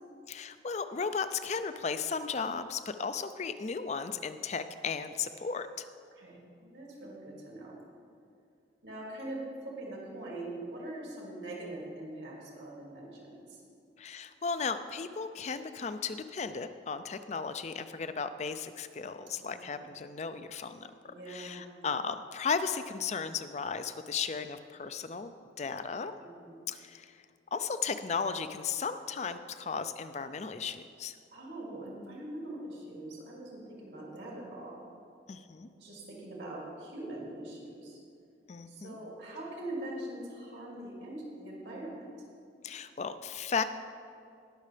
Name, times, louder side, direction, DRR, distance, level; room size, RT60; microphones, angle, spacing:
voice 1, 0.3-5.9 14.0-25.3 25.6-26.1 26.7-27.2 27.5-31.2 35.3-35.7 38.5-39.0 42.6-43.6, left 5 dB, 40° left, 11 dB, 0.4 m, -35 dB
voice 2, 6.2-7.8 8.8-13.6 19.4-19.9 21.0-21.6 26.2-26.6 31.3-34.8 35.7-38.0 38.7-42.1, right 1 dB, 75° right, -3 dB, 2.5 m, -42 dB
19.0 x 6.5 x 3.4 m, 2.4 s
head